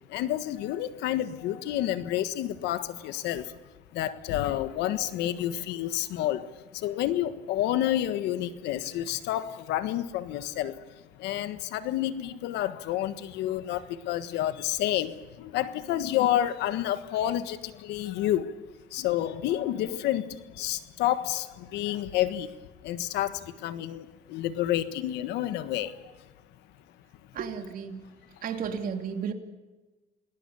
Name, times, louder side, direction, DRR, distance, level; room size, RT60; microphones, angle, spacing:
voice 1, 0.1-22.6 22.8-26.1, left 12 dB, 85° left, 12 dB, 1.5 m, -29 dB
voice 2, 27.3-28.1 28.4-29.3, right 6 dB, 55° right, 5 dB, 2.9 m, -33 dB
28.5 x 19.0 x 7.1 m, 1.2 s
cardioid pair, 110°, 17 cm